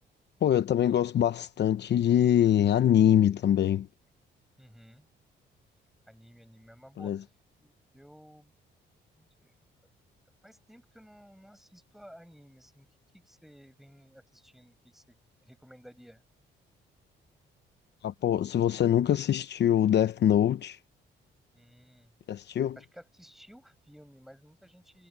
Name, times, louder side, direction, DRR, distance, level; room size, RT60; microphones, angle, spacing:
voice 1, 0.4-3.9 7.0-7.2 18.0-20.8 22.3-22.8, left 10 dB, 60° left, 0.9 m, -24 dB
voice 2, 4.6-5.1 6.1-7.1 7.6-8.5 9.2-9.5 10.4-12.9 13.1-16.2 21.5-22.1 22.8-25.1, equal, ahead, 7.7 m, -54 dB
cardioid pair, 90°, 20 cm